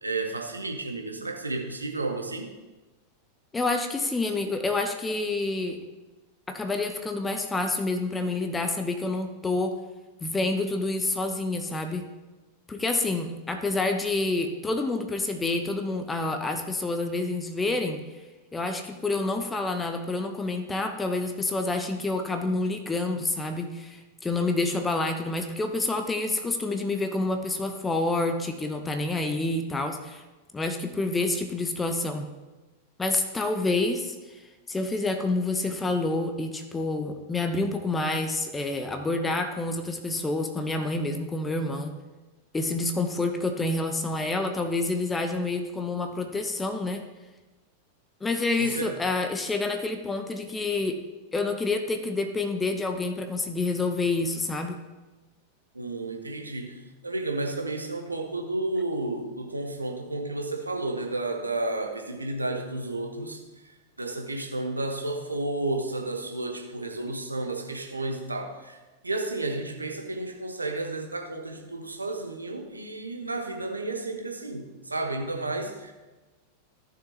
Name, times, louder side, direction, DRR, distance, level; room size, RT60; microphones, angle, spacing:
voice 1, 0.0-2.5 48.6-48.9 55.7-63.4 64.0-68.8 69.0-75.9, right 2 dB, 80° right, 3 dB, 1.1 m, -32 dB
voice 2, 3.5-5.8 6.5-9.7 10.2-12.1 12.7-18.0 18.5-30.2 30.5-32.3 33.0-34.4 34.7-41.9 42.5-47.0 48.2-51.0 51.3-54.8, left 2 dB, 15° left, 6 dB, 0.8 m, -28 dB
15.0 x 6.7 x 2.9 m, 1.2 s
figure-of-eight pair, 90°, 0 cm